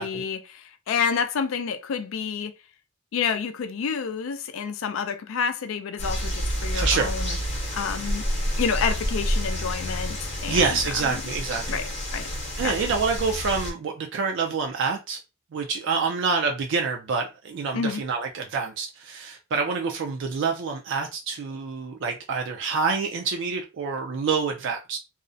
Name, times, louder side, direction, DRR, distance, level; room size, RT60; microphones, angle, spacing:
voice 1, 0.0-2.6 3.1-7.4 7.7-8.2 8.6-11.2 11.7-12.3 12.6-12.9 17.7-18.0, left 6 dB, 75° left, 0.4 m, -29 dB
sound 1, 6.0-13.7, equal, 35° left, 0.7 m, -29 dB
voice 2, 6.7-7.1 10.5-11.8 12.6-15.2 15.5-25.0, right 5 dB, 65° right, 0.4 m, -27 dB
2.4 x 2.0 x 2.5 m
head